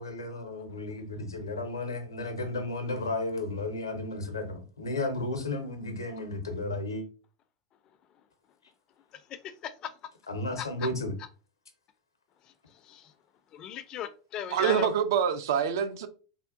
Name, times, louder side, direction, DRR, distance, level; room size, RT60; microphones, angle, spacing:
voice 1, 0.0-7.0 10.3-11.1, left 2 dB, 80° left, 0.6 m, -33 dB
voice 2, 9.3-9.9 10.6-10.9 12.8-13.1 13.5-14.9, left 9 dB, 35° left, 0.3 m, -37 dB
voice 3, 14.5-16.1, right 8 dB, 60° right, 0.3 m, -26 dB
3.5 x 2.2 x 2.5 m
figure-of-eight pair, 85°, 2 cm